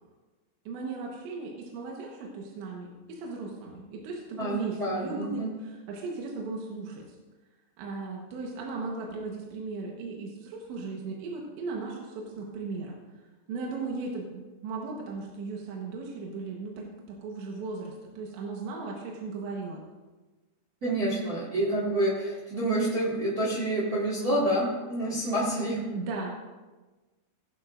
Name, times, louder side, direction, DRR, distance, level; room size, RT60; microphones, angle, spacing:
voice 1, 0.7-7.2 7.8-13.0 13.5-19.8 25.9-26.4, right 3 dB, 75° right, -1 dB, 3.4 m, -37 dB
voice 2, 4.4-5.5 20.8-25.8, right 1 dB, 55° right, -6 dB, 1.0 m, -28 dB
17.5 x 11.0 x 2.6 m, 1.2 s
omnidirectional pair, 5.4 m